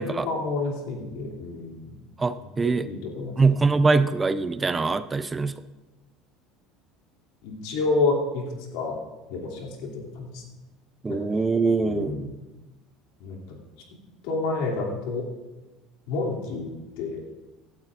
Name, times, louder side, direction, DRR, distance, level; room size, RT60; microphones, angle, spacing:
voice 1, 0.0-2.0 2.6-3.4 7.4-9.0 9.3-10.4 11.1-11.2 11.8-12.3 13.2-13.6 14.2-15.2 16.1-16.7 17.0-17.2, left 3 dB, 75° left, -1 dB, 2.7 m, -29 dB
voice 2, 2.2-2.9 3.4-5.6 11.0-12.2, right 4 dB, 20° right, 12 dB, 0.5 m, -23 dB
16.5 x 12.0 x 2.5 m, 1.1 s
supercardioid pair, 110°, 0 cm